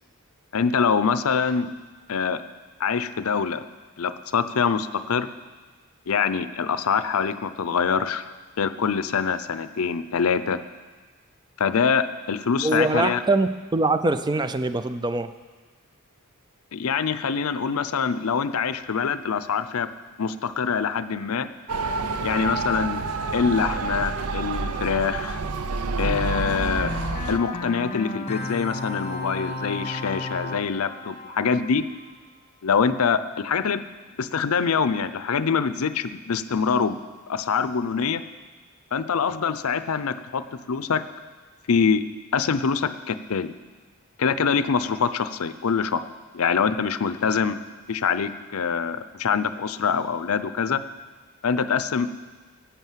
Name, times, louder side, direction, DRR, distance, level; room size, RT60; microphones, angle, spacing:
voice 1, 0.5-1.7 2.1-2.4 2.8-3.6 4.0-5.3 6.1-8.3 8.6-10.6 11.6-13.2 16.7-19.9 20.2-21.5 22.2-23.0 23.3-25.4 26.0-26.9 27.3-31.8 32.6-33.8 34.2-37.0 37.3-38.2 38.9-40.4 40.7-41.0 41.7-42.0 42.3-43.5 44.2-46.0 46.3-47.6 47.9-50.8 51.4-52.2, left 6 dB, 75° left, 13 dB, 0.6 m, -24 dB
voice 2, 12.6-15.3, right 2 dB, 20° right, 11 dB, 0.4 m, -23 dB
Motor vehicle (road) / Siren, 21.7-27.4, right 3 dB, 80° right, 0.6 m, -28 dB
sound 1, 26.0-32.2, left 2 dB, 30° left, 1.2 m, -34 dB
11.0 x 8.4 x 7.4 m, 1.4 s
head